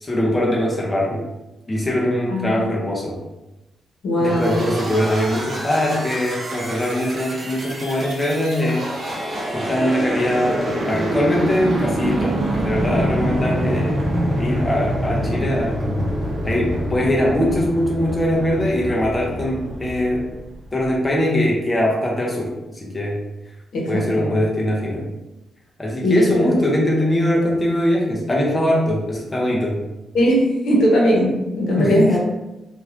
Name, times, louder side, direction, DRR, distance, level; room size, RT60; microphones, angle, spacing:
voice 1, 0.0-1.3 1.7-3.2 4.2-8.9 9.5-13.9 14.4-15.8 16.4-20.3 20.7-23.2 23.9-25.1 25.8-29.8 31.8-32.2, left 1 dB, 15° left, -3 dB, 0.5 m, -21 dB
voice 2, 2.3-2.7 4.0-4.7 23.7-24.3 26.0-26.6 27.3-27.4 30.1-32.2, equal, 80° left, -3 dB, 0.8 m, -19 dB
sound 1, 4.2-20.9, equal, 35° right, 0.7 m, -26 dB
3.1 x 2.4 x 2.4 m, 0.98 s
wide cardioid pair, 155°, 0 cm